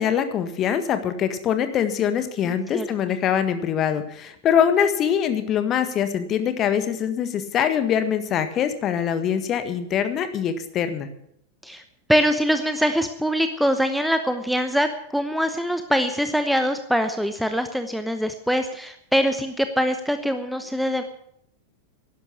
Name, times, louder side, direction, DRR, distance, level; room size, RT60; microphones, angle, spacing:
voice 1, 0.0-11.1, left 8 dB, 30° left, 10 dB, 1.6 m, -23 dB
voice 2, 2.4-2.9 11.6-11.8 12.1-21.0, equal, ahead, 8 dB, 1.0 m, -23 dB
12.0 x 11.0 x 8.4 m, 0.72 s
figure-of-eight pair, 90°, 0 cm